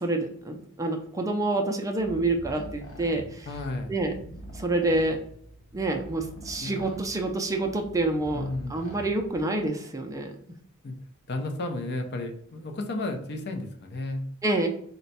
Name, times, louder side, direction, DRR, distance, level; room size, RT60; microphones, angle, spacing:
voice 1, 0.0-3.5 3.9-4.1 4.5-5.2 5.7-10.4 14.4-14.7, right 2 dB, 15° right, 3 dB, 0.4 m, -27 dB
sound 1, 2.0-9.7, right 1 dB, 85° left, 0.9 m, -44 dB
voice 2, 3.5-3.9 6.6-6.7 8.3-8.8 10.8-11.0 11.3-14.3, left 2 dB, 50° left, 5 dB, 0.6 m, -33 dB
4.0 x 2.2 x 4.1 m, 0.65 s
head